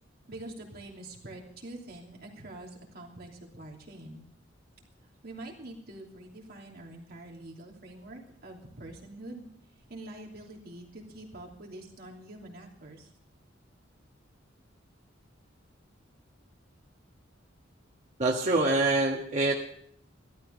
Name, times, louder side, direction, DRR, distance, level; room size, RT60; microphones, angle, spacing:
voice 1, 0.3-4.2 5.2-9.5 9.9-13.1, right 1 dB, 55° right, -1 dB, 3.0 m, -45 dB
voice 2, 18.2-19.6, right 2 dB, 40° right, -2 dB, 1.5 m, -25 dB
15.0 x 13.0 x 5.3 m, 0.68 s
head